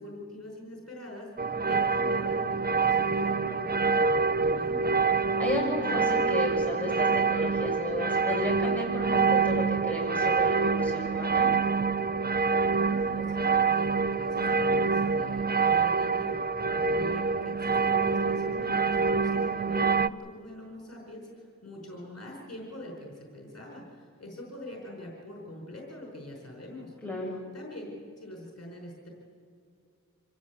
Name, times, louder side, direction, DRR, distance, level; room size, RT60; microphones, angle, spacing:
voice 1, 0.0-4.8 12.8-26.9 27.5-29.1, left 1 dB, 50° left, -1 dB, 5.0 m, -43 dB
sound 1, 1.4-20.1, right 4 dB, 30° right, 0.6 m, -26 dB
voice 2, 5.4-11.5 27.0-27.4, left 1 dB, 5° left, -3 dB, 7.3 m, -33 dB
26.0 x 16.5 x 8.5 m, 2.4 s
wide cardioid pair, 65°, 31 cm